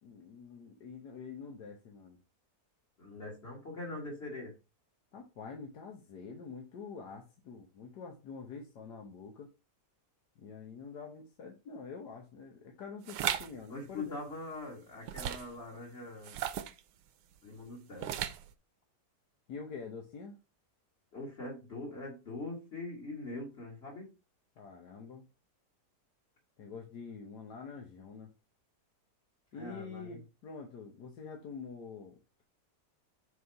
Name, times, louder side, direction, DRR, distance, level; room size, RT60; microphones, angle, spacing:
voice 1, 0.0-2.2 5.1-9.5 10.4-14.2 19.5-20.4 24.6-25.3 26.6-28.3 29.5-32.4, left 5 dB, 75° left, 2 dB, 1.6 m, -46 dB
voice 2, 3.0-4.5 13.7-16.4 17.4-18.1 21.1-24.1 29.5-30.2, left 2 dB, 40° left, -3 dB, 1.7 m, -42 dB
sound 1, 13.1-13.5 15.1-15.6 16.2-16.8 18.0-18.5, right 11 dB, 90° right, 1.2 m, -35 dB
5.8 x 4.0 x 4.5 m, 0.29 s
omnidirectional pair, 1.8 m